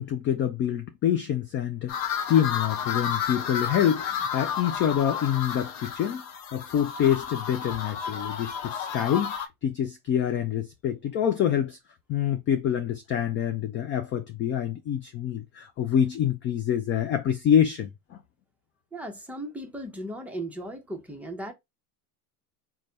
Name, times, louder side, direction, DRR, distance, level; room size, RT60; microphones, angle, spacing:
voice 1, 0.0-6.2 6.5-11.8 12.1-18.2, left 9 dB, 30° left, 0.3 m, -26 dB
sound 1, 1.9-9.5, left 7 dB, 60° left, 0.9 m, -32 dB
voice 2, 18.9-21.5, right 1 dB, 5° right, 0.8 m, -36 dB
3.3 x 2.2 x 3.9 m
supercardioid pair, 110°, 44 cm